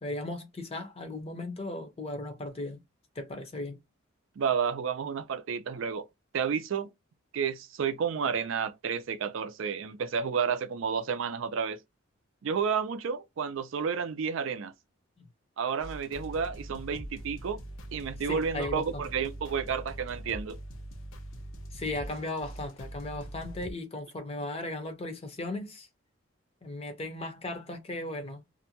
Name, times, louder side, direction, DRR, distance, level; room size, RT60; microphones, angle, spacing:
voice 1, 0.0-2.8 3.2-3.8 15.2-15.3 18.2-19.0 21.7-25.9 26.6-28.4, left 2 dB, 30° left, 0.7 m, -36 dB
voice 2, 4.4-6.1 6.3-6.9 7.3-11.8 12.4-14.7 15.6-17.6 17.9-20.6, right 6 dB, 70° right, 0.4 m, -31 dB
sound 1, 15.8-23.7, right 1 dB, 80° left, 0.6 m, -43 dB
2.6 x 2.2 x 2.7 m
head